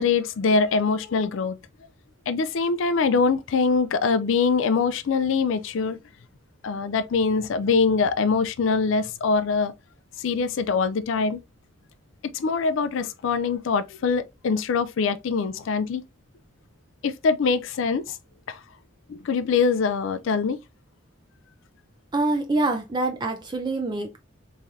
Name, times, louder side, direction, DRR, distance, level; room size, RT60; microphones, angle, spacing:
voice 1, 0.0-1.6 2.3-6.0 6.6-9.7 10.2-11.4 12.3-16.0 17.0-18.2 18.5-18.6 19.1-20.6, left 5 dB, 70° left, 0.4 m, -23 dB
voice 2, 22.1-24.2, right 2 dB, 20° right, 0.5 m, -25 dB
3.6 x 3.1 x 2.7 m
head